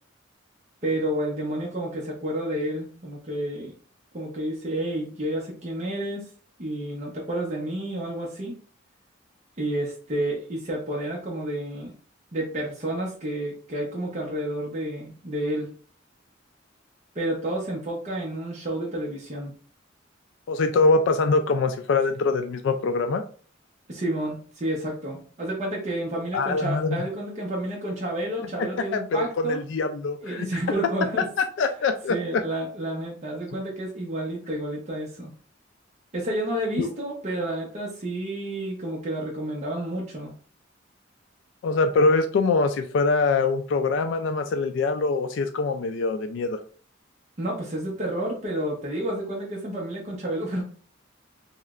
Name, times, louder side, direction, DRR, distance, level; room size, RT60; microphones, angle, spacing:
voice 1, 0.8-3.7 4.1-6.2 6.6-8.6 9.6-11.9 12.3-15.7 17.1-19.5 23.9-29.6 30.2-31.3 32.1-35.3 36.1-40.3 47.4-50.6, right 1 dB, 35° right, -3 dB, 0.7 m, -30 dB
voice 2, 20.5-23.2 26.3-27.0 28.9-30.5 31.6-32.4 36.8-36.9 41.6-46.6, left 3 dB, 65° left, 7 dB, 0.3 m, -23 dB
3.2 x 3.0 x 2.4 m, 0.43 s
head